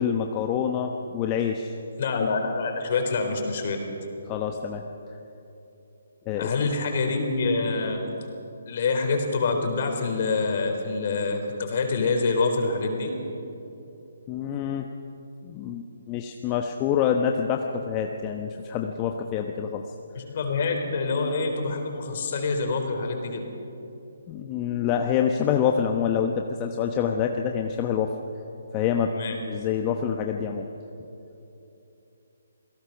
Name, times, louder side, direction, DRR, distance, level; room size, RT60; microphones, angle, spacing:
voice 1, 0.0-1.7 4.3-4.8 6.3-6.7 14.3-14.9 15.4-19.8 24.3-28.1 28.7-29.1 29.5-30.7, left 8 dB, 25° left, 3 dB, 1.0 m, -26 dB
voice 2, 2.0-3.8 6.4-8.0 8.6-13.1 20.2-23.5 29.1-29.4, left 4 dB, 50° left, 3 dB, 4.1 m, -26 dB
27.5 x 18.0 x 6.0 m, 2.9 s
figure-of-eight pair, 145°, 0 cm